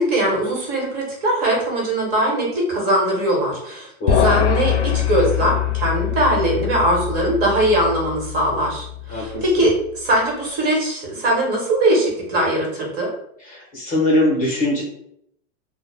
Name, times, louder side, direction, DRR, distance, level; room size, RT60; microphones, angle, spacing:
voice 1, 0.0-13.1, right 1 dB, 45° right, -2 dB, 1.1 m, -21 dB
voice 2, 4.0-4.5 9.1-9.7 13.4-14.8, left 1 dB, 20° left, -4 dB, 0.6 m, -22 dB
sound 1, 4.1-9.6, left 10 dB, 65° left, 0.5 m, -23 dB
2.1 x 2.1 x 3.2 m, 0.72 s
supercardioid pair, 145°, 38 cm